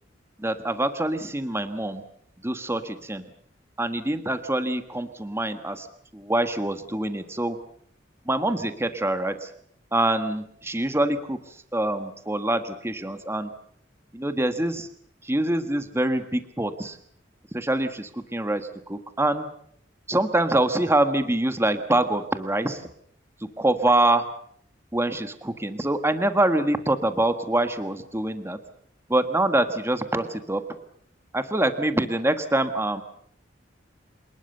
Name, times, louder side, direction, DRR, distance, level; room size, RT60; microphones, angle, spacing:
voice 1, 0.4-2.0 2.4-3.2 3.8-5.9 6.1-7.6 8.3-9.5 9.9-11.4 11.7-13.5 14.1-14.9 15.2-17.0 17.5-19.5 20.1-22.8 23.6-24.3 24.9-28.6 29.1-30.6 31.3-33.0, right 1 dB, 15° right, 9 dB, 1.4 m, -25 dB
27.0 x 20.0 x 6.8 m, 0.66 s
head